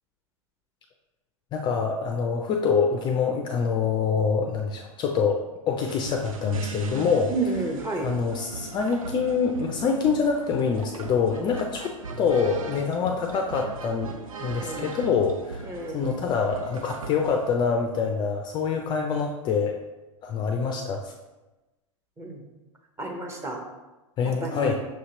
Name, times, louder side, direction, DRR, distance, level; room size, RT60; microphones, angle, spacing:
voice 1, 1.5-7.3 8.0-14.1 14.4-19.8 20.2-21.1 24.2-24.8, left 5 dB, 25° left, 3 dB, 0.3 m, -25 dB
sound 1, 5.9-17.6, right 3 dB, 90° right, 0.5 m, -38 dB
voice 2, 7.3-8.1 14.6-14.9 15.6-16.1 22.2-22.4 23.0-23.6 24.2-24.8, right 3 dB, 15° right, 1 dB, 0.8 m, -31 dB
6.0 x 2.8 x 2.8 m, 1.1 s
hypercardioid pair, 110°, 17 cm